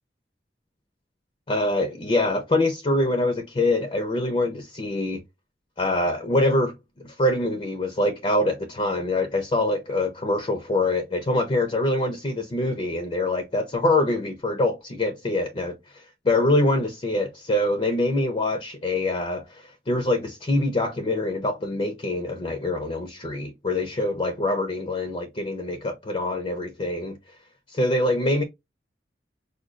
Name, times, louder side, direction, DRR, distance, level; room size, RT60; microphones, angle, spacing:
voice 1, 1.5-5.2 5.8-27.2 27.7-28.4, left 2 dB, 35° left, 0.5 m, -24 dB
4.9 x 2.2 x 2.4 m
head